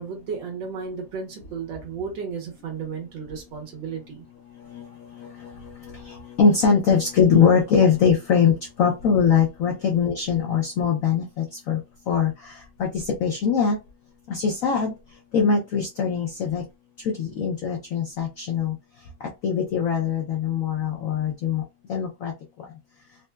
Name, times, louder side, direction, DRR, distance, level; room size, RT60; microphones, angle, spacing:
voice 1, 0.0-4.2, right 6 dB, 65° right, 1.6 m, -33 dB
voice 2, 5.2-5.5 6.0-11.8 12.1-12.5 12.8-13.8 14.3-14.9 15.3-16.6 17.0-18.7 19.4-21.6 21.9-22.3, left 6 dB, 90° left, 0.7 m, -22 dB
4.0 x 2.1 x 2.2 m
omnidirectional pair, 2.2 m